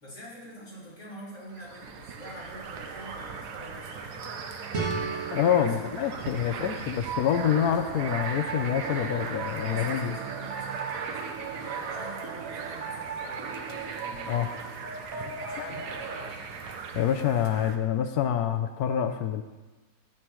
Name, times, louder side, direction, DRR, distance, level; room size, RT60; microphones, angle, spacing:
voice 1, 0.0-4.4 5.6-7.0 9.7-14.4 15.1-16.5, equal, 50° left, -8 dB, 3.5 m, -47 dB
sound 1, 1.5-17.8, right 5 dB, 85° right, 1.4 m, -38 dB
sound 2, 4.7-7.6, right 4 dB, 45° right, 1.7 m, -36 dB
voice 2, 5.3-10.1 14.3-14.5 15.6-15.7 16.9-19.4, left 9 dB, 75° left, 8 dB, 1.1 m, -26 dB
sound 3, 7.0-16.3, right 5 dB, 65° right, 1.4 m, -39 dB
13.5 x 8.6 x 3.1 m, 1.2 s
omnidirectional pair, 1.7 m